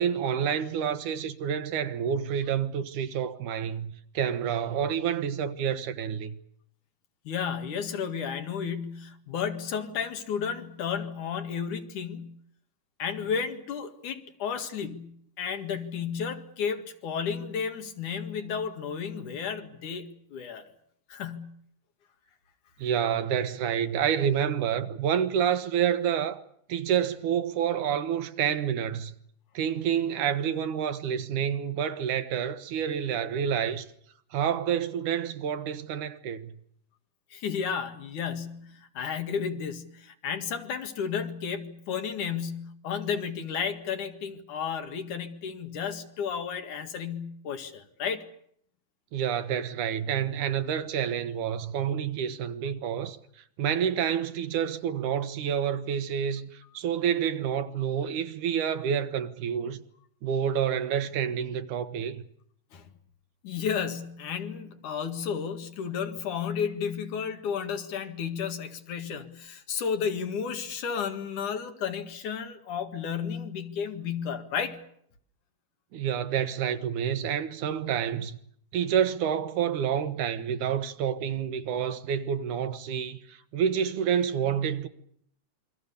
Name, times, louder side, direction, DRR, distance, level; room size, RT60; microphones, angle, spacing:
voice 1, 0.0-6.4 22.8-26.4 26.7-29.1 29.5-33.9 34.3-36.5 49.1-53.2 53.6-59.8 60.2-62.2 75.9-78.4 78.7-84.9, right 8 dB, 75° right, 2.7 m, -28 dB
voice 2, 7.2-12.4 13.0-20.7 21.1-21.5 37.3-48.3 62.7-62.9 63.4-74.8, left 7 dB, 75° left, 3.3 m, -33 dB
27.5 x 23.5 x 6.9 m
omnidirectional pair, 3.7 m